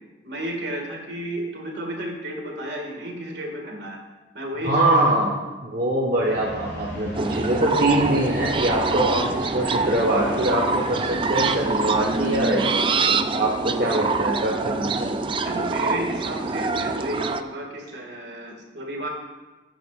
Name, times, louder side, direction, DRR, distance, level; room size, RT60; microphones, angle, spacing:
voice 1, 0.2-4.0 4.3-5.2 15.4-19.1, right 1 dB, 70° right, 1 dB, 2.0 m, -32 dB
voice 2, 4.6-5.4 5.6-15.3, right 1 dB, 50° right, -3 dB, 1.3 m, -23 dB
sound 1, 6.1-12.3, equal, 60° left, 4.0 m, -37 dB
sound 2, 7.1-17.4, right 4 dB, 25° right, 0.4 m, -25 dB
16.0 x 9.2 x 2.5 m, 1.2 s
head